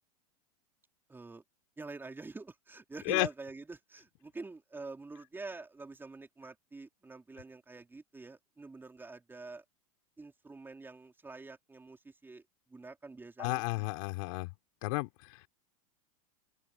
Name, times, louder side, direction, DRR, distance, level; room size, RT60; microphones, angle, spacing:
voice 1, 1.1-1.4 1.8-9.6 10.2-12.4 12.7-13.9, right 3 dB, 10° right, 3.7 m, -46 dB
voice 2, 13.4-14.5 14.8-15.5, left 25 dB, 60° left, 3.3 m, -32 dB
open air
hypercardioid pair, 110°, 19 cm